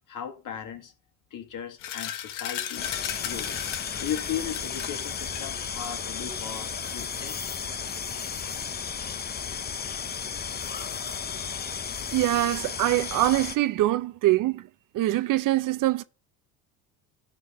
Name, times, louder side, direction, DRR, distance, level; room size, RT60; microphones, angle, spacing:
voice 1, 0.1-0.9 1.3-2.9 3.2-3.6 4.0-7.5, left 9 dB, 50° left, 1.8 m, -37 dB
sound 1, 1.8-6.9, left 11 dB, 80° left, 1.2 m, -37 dB
sound 2, 2.8-13.6, left 6 dB, 25° left, 0.7 m, -34 dB
voice 2, 12.1-14.7 14.9-16.0, right 16 dB, 50° right, 0.6 m, -24 dB
11.0 x 3.8 x 6.0 m
supercardioid pair, 80°, 41 cm